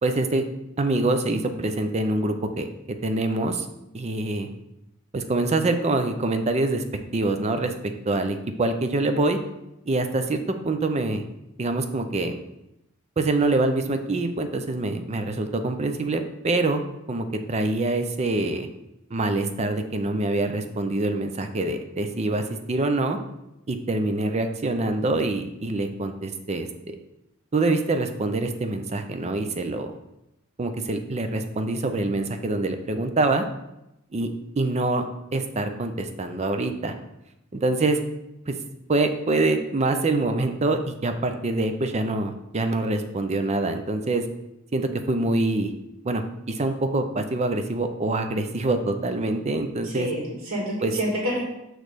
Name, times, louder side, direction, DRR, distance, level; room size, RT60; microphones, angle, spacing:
voice 1, 0.0-0.4 0.8-2.7 3.0-3.7 3.9-4.5 5.1-6.8 7.1-7.7 8.1-9.4 9.9-11.2 11.6-12.4 13.2-16.8 17.1-18.7 19.1-23.2 23.7-27.0 27.5-29.9 30.6-33.4 34.1-34.3 34.6-35.0 35.3-36.9 37.5-38.0 38.5-38.6 38.9-44.2 44.7-45.7 46.0-50.1 50.8-50.9, right 2 dB, 30° right, 7 dB, 0.5 m, -25 dB
voice 2, 49.8-51.5, equal, 85° right, -4 dB, 1.7 m, -28 dB
6.2 x 3.2 x 5.0 m, 0.88 s
head